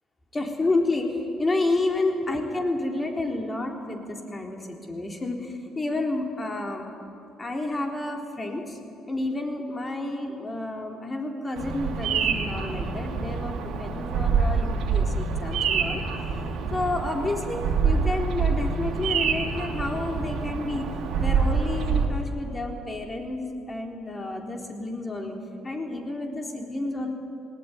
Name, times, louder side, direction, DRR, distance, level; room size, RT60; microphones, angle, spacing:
voice 1, 0.3-6.9 7.4-8.8 9.1-16.0 16.7-20.9 21.2-25.4 25.6-27.1, left 2 dB, 25° left, 2 dB, 3.8 m, -30 dB
Bird vocalization bird call bird song, 11.6-22.1, right 5 dB, 65° right, 2.6 m, -26 dB
19.0 x 17.5 x 9.5 m, 2.6 s
hypercardioid pair, 55°, 0 cm